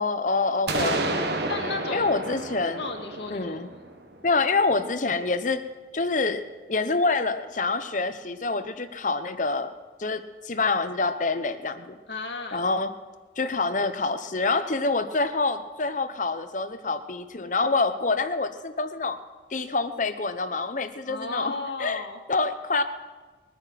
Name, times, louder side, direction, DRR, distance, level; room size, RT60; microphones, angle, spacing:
voice 1, 0.0-1.4 1.9-2.8 3.3-3.7 4.2-5.6 5.9-6.4 6.7-9.7 10.0-12.0 12.5-12.9 13.4-19.2 19.5-21.5 21.8-22.0 22.3-22.8, left 3 dB, 40° left, 10 dB, 0.9 m, -26 dB
sound 1, 0.7-4.5, right 2 dB, 65° right, 1.4 m, -30 dB
voice 2, 1.5-2.2 2.8-3.6 12.1-12.6 21.1-22.2, left 3 dB, 70° left, 3 dB, 1.9 m, -34 dB
21.5 x 9.2 x 5.9 m, 1.3 s
head